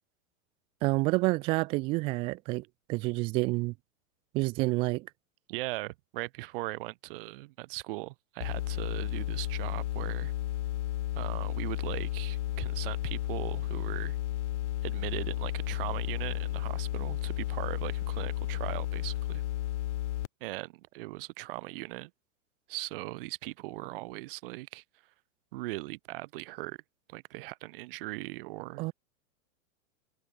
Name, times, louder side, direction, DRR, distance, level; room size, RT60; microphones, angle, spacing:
voice 1, 0.8-2.6 2.9-3.7 4.3-5.1 28.8-28.9, right 24 dB, 15° right, 0.6 m, -28 dB
voice 2, 5.5-10.3 11.2-14.2 14.8-19.4 20.4-22.1 22.7-24.8 25.5-26.8 27.1-28.8, right 21 dB, 40° right, 7.4 m, -39 dB
sound 1, 8.4-20.3, left 14 dB, 50° left, 5.9 m, -33 dB
supercardioid pair, 175°, 43 cm